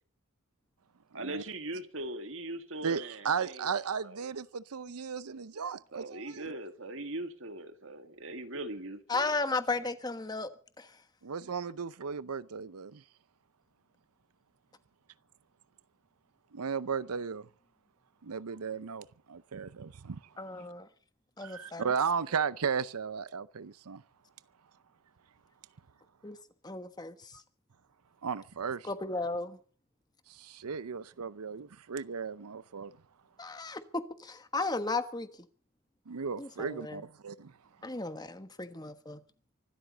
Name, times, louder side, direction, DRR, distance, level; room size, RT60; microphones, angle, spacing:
voice 1, 1.1-3.2 5.9-9.2, right 1 dB, 60° right, 2.0 m, -40 dB
voice 2, 2.8-6.5 11.2-13.0 16.5-17.5 18.2-20.2 21.4-24.0 28.2-28.9 30.3-32.9 36.1-37.5, right 6 dB, 90° right, 0.6 m, -35 dB
voice 3, 9.1-10.5 10.8-11.0 20.4-20.9 21.4-21.9 26.2-26.4 26.6-27.4 28.8-29.6 33.4-35.3 36.4-37.0 37.8-39.2, left 3 dB, 20° left, 1.3 m, -35 dB
25.0 x 13.0 x 4.0 m
head